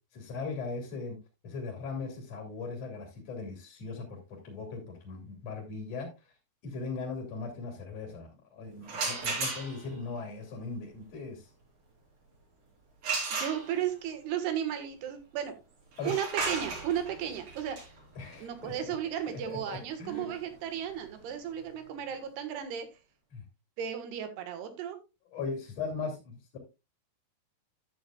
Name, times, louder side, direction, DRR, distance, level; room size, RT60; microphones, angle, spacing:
voice 1, 0.1-1.2 1.4-6.1 6.6-11.5 16.0-16.1 18.2-18.9 19.3-20.4 23.3-23.4 25.3-26.6, left 4 dB, 45° left, 0 dB, 3.6 m, -39 dB
sound 1, 8.8-10.0 13.0-14.1 15.9-21.6, right 4 dB, 60° right, 5.9 m, -36 dB
voice 2, 13.3-15.6 16.1-17.9 18.4-22.9 23.8-25.0, right 9 dB, 90° right, 8 dB, 3.6 m, -34 dB
11.5 x 9.2 x 2.4 m, 0.26 s
omnidirectional pair, 4.6 m